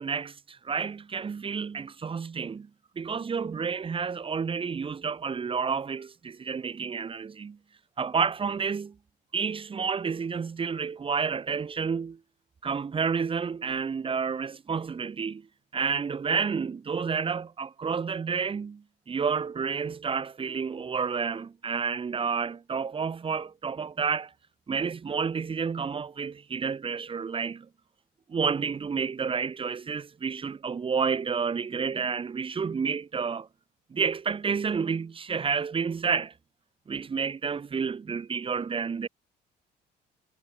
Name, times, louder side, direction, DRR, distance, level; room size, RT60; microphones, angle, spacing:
voice 1, 0.0-2.7 2.9-7.6 8.0-8.9 9.3-12.2 12.6-15.5 15.7-24.3 24.7-27.7 28.3-33.5 33.9-36.3 36.9-39.1, right 6 dB, 30° right, 3.3 m, -30 dB
cardioid pair, 110°, 17 cm